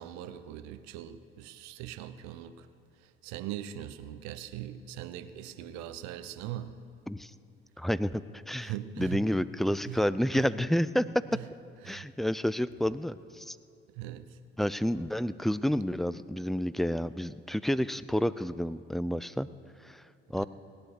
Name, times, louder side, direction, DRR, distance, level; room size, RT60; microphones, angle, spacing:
voice 1, 0.0-2.7 3.2-6.7 8.6-9.3 9.8-10.1 10.3-10.5 11.3-11.4 11.8-12.1 14.0-14.4 20.4-20.5, right 12 dB, 70° right, 12 dB, 0.9 m, -40 dB
voice 2, 7.8-11.1 11.9-13.6 14.6-19.5 19.8-20.0 20.3-20.4, equal, ahead, 15 dB, 0.4 m, -30 dB
17.0 x 10.5 x 6.9 m, 2.5 s
hypercardioid pair, 55°, 29 cm